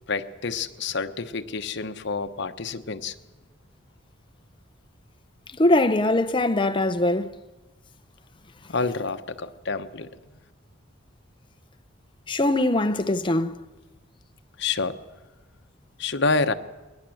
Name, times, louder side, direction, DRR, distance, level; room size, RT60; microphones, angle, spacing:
voice 1, 0.1-3.1 8.7-10.1 14.6-15.0 16.0-16.5, left 4 dB, 60° left, 1.1 m, -28 dB
voice 2, 5.6-7.3 12.3-13.6, left 1 dB, 25° left, 0.8 m, -22 dB
22.0 x 19.0 x 7.8 m
head